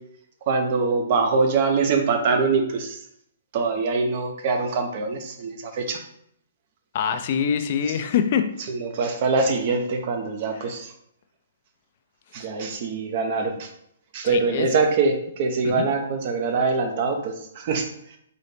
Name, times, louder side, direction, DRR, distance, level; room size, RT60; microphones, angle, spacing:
voice 1, 0.5-3.0 3.5-6.0 8.7-10.9 12.3-13.7 14.1-17.9, right 4 dB, 45° right, 4 dB, 0.8 m, -23 dB
voice 2, 6.9-8.5 10.5-10.7 14.2-14.7 15.6-15.9, left 8 dB, 50° left, 8 dB, 0.4 m, -24 dB
3.9 x 2.8 x 3.4 m, 0.71 s
hypercardioid pair, 135°, 0 cm